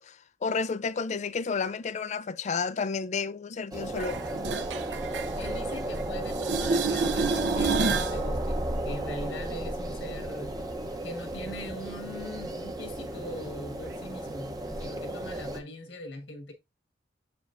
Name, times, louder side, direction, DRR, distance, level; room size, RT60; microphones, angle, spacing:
voice 1, 0.0-4.2, left 5 dB, 40° left, 0.4 m, -31 dB
sound 1, 3.7-15.6, right 1 dB, 20° right, 0.8 m, -34 dB
sound 2, 4.0-6.0 6.3-8.2 13.9-14.0, right 4 dB, 65° right, 0.7 m, -29 dB
voice 2, 5.4-10.5 11.0-16.5, left 1 dB, 70° left, 1.7 m, -41 dB
7.5 x 5.1 x 2.5 m
head